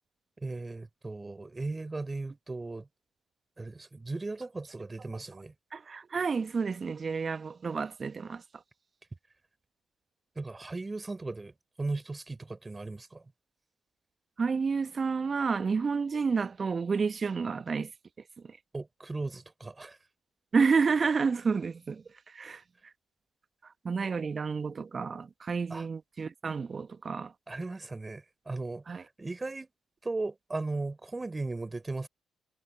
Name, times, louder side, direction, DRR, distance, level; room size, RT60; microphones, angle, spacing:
voice 1, 0.4-2.9 3.6-5.5 10.4-11.5 11.8-13.2 18.7-20.0 25.7-25.9 27.5-29.7 30.0-32.1, right 3 dB, 25° right, 3.8 m, -37 dB
voice 2, 5.7-8.4 14.4-17.9 20.5-22.0 22.3-22.6 23.8-27.3 28.9-29.0, right 5 dB, 45° right, 1.4 m, -30 dB
hypercardioid pair, 40°, 0 cm